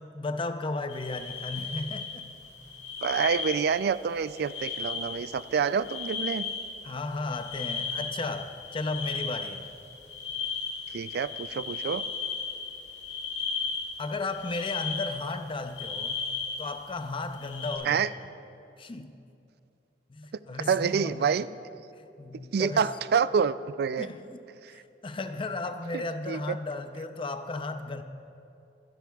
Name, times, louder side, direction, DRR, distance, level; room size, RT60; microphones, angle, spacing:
voice 1, 0.0-2.2 6.8-9.6 14.0-16.3 16.6-18.1 18.8-19.1 20.1-21.3 22.0-22.9 24.0-24.2 24.7-28.0, left 3 dB, 30° left, 9 dB, 0.5 m, -34 dB
sound 1, 0.9-15.4 15.7-16.7 17.3-17.8, left 5 dB, 70° left, 2.5 m, -36 dB
voice 2, 3.0-6.5 10.9-12.0 17.9-18.1 20.7-21.5 22.5-24.1 24.6-24.7 25.9-26.6, right 6 dB, 60° right, 16 dB, 0.3 m, -27 dB
25.5 x 10.5 x 2.3 m, 2.6 s
head